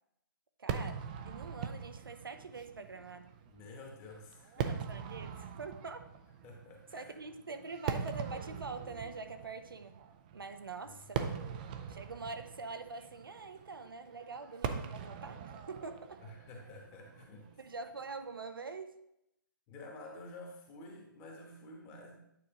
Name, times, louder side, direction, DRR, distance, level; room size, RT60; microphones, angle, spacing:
voice 1, 0.6-3.4 4.6-6.1 6.9-10.0 10.3-11.4 11.9-16.2 17.6-19.0, right 4 dB, 90° right, 8 dB, 0.7 m, -45 dB
Fireworks, 0.7-18.0, right 7 dB, 25° right, 0.4 m, -42 dB
voice 2, 3.5-4.7 6.4-7.1 10.8-11.2 16.2-17.6 19.7-22.2, left 2 dB, 20° left, 0 dB, 1.1 m, -50 dB
9.0 x 4.7 x 2.9 m, 0.81 s
hypercardioid pair, 150°, 11 cm